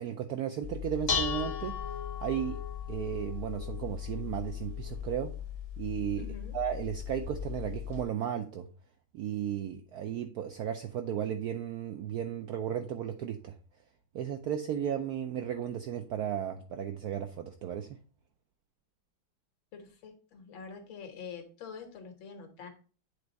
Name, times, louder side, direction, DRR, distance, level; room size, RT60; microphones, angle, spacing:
voice 1, 0.0-1.8 2.2-2.6 2.9-5.3 5.8-6.3 6.5-8.7 9.1-13.6 14.1-17.9, right 9 dB, 75° right, 6 dB, 0.8 m, -34 dB
Dishes pots and pans, 0.6-8.0, left 7 dB, 40° left, 0.9 m, -37 dB
voice 2, 6.1-6.6 19.7-22.7, left 6 dB, 75° left, 5 dB, 2.0 m, -46 dB
8.4 x 3.5 x 4.0 m, 0.39 s
omnidirectional pair, 2.1 m